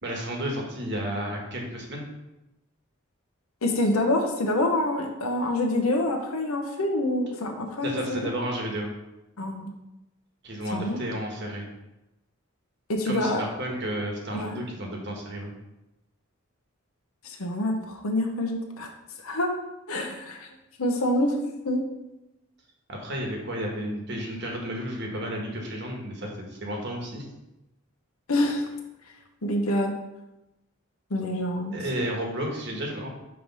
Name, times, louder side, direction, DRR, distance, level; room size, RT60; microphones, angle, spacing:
voice 1, 0.0-2.1 7.8-8.9 10.4-11.7 13.0-15.5 22.9-27.3 31.7-33.1, equal, 50° right, 1 dB, 1.2 m, -32 dB
voice 2, 3.6-8.3 9.4-9.7 10.7-11.0 12.9-13.4 14.3-14.7 17.2-18.9 19.2-19.6 19.9-20.5 20.8-21.8 28.3-28.7 29.4-29.9 31.1-31.8, left 1 dB, 85° left, 2 dB, 0.9 m, -26 dB
5.8 x 3.2 x 5.3 m, 0.95 s
head